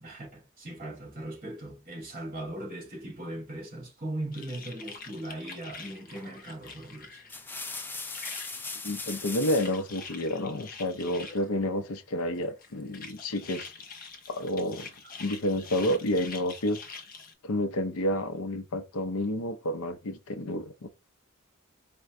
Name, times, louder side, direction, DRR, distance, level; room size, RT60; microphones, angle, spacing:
voice 1, 0.0-7.2, right 1 dB, 40° right, 2.1 m, -39 dB
sound 1, 4.3-7.5 7.8-8.6 9.1-11.4 12.3-17.3, left 4 dB, 40° left, 0.7 m, -45 dB
sound 2, 6.2-6.5 7.1-9.8 11.3-11.9, left 3 dB, 10° left, 0.4 m, -39 dB
voice 2, 8.8-13.7 14.3-14.9 15.2-16.8 17.4-20.9, left 1 dB, 80° left, 0.6 m, -30 dB
4.3 x 2.2 x 3.6 m
head